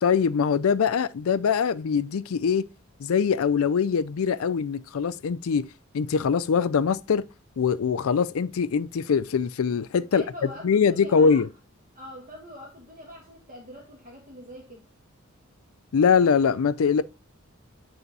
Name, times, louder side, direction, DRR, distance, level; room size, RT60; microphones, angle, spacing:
voice 1, 0.0-2.7 3.0-5.7 5.9-7.3 7.6-10.2 10.6-11.5 15.9-17.0, left 6 dB, 75° left, 0.4 m, -23 dB
voice 2, 10.1-11.4 11.9-14.9, equal, 35° right, 1.4 m, -43 dB
9.1 x 3.5 x 4.0 m
head